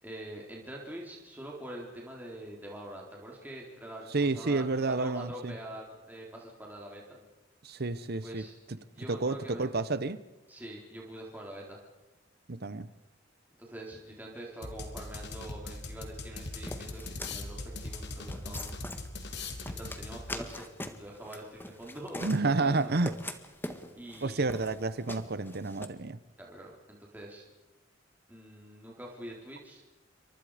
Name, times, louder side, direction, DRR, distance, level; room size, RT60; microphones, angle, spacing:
voice 1, 0.0-7.2 8.2-9.6 10.5-11.8 13.6-18.8 19.6-20.7 20.9-22.9 24.0-24.6 26.4-27.5 28.3-29.8, right 1 dB, 10° right, -2 dB, 4.1 m, -45 dB
voice 2, 4.1-5.5 7.6-8.4 9.1-10.2 12.5-12.9 22.2-23.1 24.2-26.2, right 3 dB, 55° right, 15 dB, 0.9 m, -30 dB
sound 1, 14.6-20.5, left 2 dB, 65° left, 2.8 m, -40 dB
sound 2, 16.7-25.9, left 1 dB, 10° left, 1.7 m, -43 dB
28.5 x 24.5 x 5.1 m, 1.0 s
head